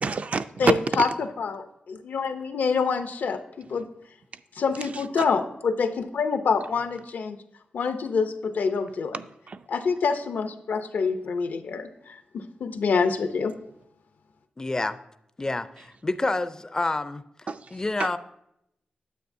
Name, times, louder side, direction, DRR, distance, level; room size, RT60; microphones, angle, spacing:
voice 1, 0.0-1.1 4.9-5.2 9.1-9.6 17.5-18.2, right 4 dB, 50° right, 0.3 m, -28 dB
voice 2, 0.6-3.9 4.6-7.4 7.7-9.2 9.7-13.5, left 5 dB, 80° left, 0.6 m, -26 dB
voice 3, 14.6-15.0 15.4-17.2 17.7-18.2, left 2 dB, 20° left, 0.4 m, -28 dB
9.3 x 8.1 x 2.6 m
wide cardioid pair, 95°, 3 cm